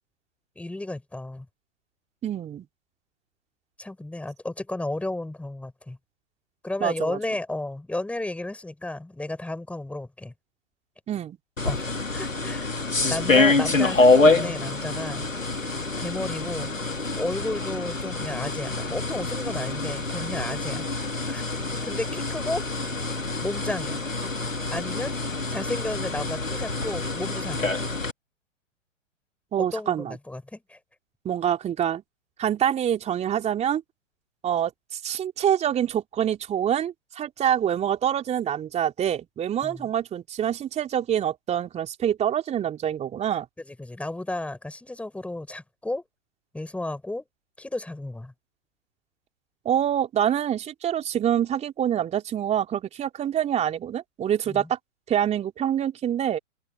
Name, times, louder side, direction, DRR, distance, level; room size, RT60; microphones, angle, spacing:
voice 1, 0.5-1.5 3.8-6.0 6.6-10.3 11.6-11.8 12.1-12.7 13.1-15.3 16.0-16.7 17.1-20.9 21.3-21.4 21.8-22.6 23.4-24.0 24.7-25.1 25.5-27.7 29.6-30.8 39.6-39.9 43.6-46.0 46.5-47.2 47.6-48.3 54.5-54.7, left 2 dB, 5° left, 6.5 m, -33 dB
voice 2, 2.2-2.6 6.8-7.2 11.1-11.4 29.5-30.2 31.2-32.0 32.4-33.8 34.4-43.5 49.6-54.8 55.1-56.4, right 10 dB, 15° right, 3.1 m, -26 dB
sound 1, 11.6-28.1, left 3 dB, 85° left, 2.4 m, -26 dB
figure-of-eight pair, 115°, 38 cm